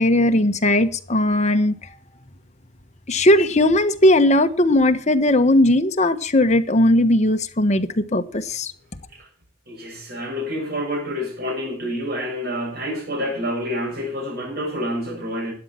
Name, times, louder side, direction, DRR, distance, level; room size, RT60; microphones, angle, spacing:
voice 1, 0.0-1.9 3.1-8.7, left 1 dB, 40° left, 1.3 m, -18 dB
voice 2, 9.7-15.5, equal, 55° right, 7.5 m, -28 dB
12.5 x 9.7 x 6.1 m
head